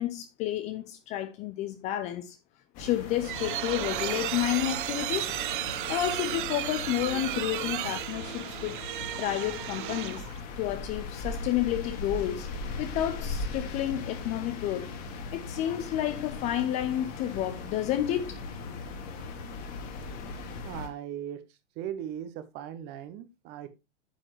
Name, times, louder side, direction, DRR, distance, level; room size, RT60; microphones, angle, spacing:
voice 1, 0.0-2.4 2.8-5.3 5.9-8.8 9.2-10.3 10.6-12.5 12.8-14.9 15.3-18.5, left 13 dB, 20° left, 0.5 m, -30 dB
sound 1, 2.7-20.9, left 3 dB, 40° left, 2.4 m, -39 dB
sound 2, 2.8-10.4, right 14 dB, 45° right, 0.6 m, -34 dB
voice 2, 20.6-21.4 21.8-23.7, right 10 dB, 30° right, 1.0 m, -38 dB
9.1 x 7.4 x 3.2 m
figure-of-eight pair, 115°, 36 cm